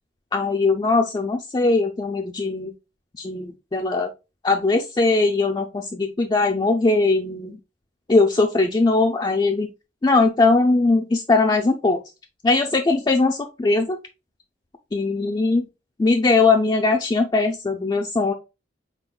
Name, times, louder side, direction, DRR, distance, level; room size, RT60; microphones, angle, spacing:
voice 1, 0.3-2.7 3.1-4.1 4.4-7.6 8.1-9.7 10.0-12.0 12.4-14.0 14.9-15.6 16.0-18.3, left 3 dB, 25° left, 3 dB, 0.4 m, -20 dB
4.1 x 3.6 x 2.3 m, 0.27 s
head